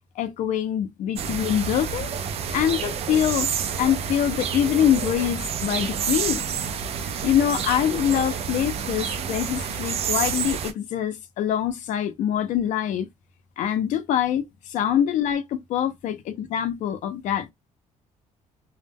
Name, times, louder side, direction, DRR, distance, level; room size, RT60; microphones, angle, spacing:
voice 1, 0.2-2.1 2.5-3.5 3.8-6.4 7.2-13.1 13.6-17.5, left 10 dB, 70° left, 0.5 m, -24 dB
sound 1, 1.2-10.7, right 7 dB, 50° right, 0.4 m, -29 dB
2.1 x 2.1 x 3.3 m
cardioid pair, 170°, 14 cm